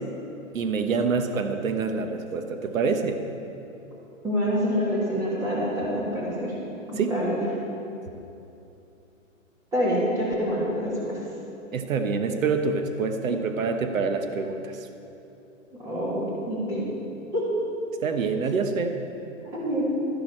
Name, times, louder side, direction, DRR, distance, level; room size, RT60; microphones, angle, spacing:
voice 1, 0.5-3.2 7.0-7.1 11.7-14.9 18.0-19.0, right 4 dB, 75° right, 7 dB, 1.1 m, -26 dB
voice 2, 4.2-6.6 6.9-7.4 9.7-11.2 15.8-16.8 17.3-17.5 19.4-19.8, equal, 10° right, -7 dB, 1.7 m, -26 dB
13.0 x 10.5 x 4.3 m, 2.8 s
hypercardioid pair, 170°, 40 cm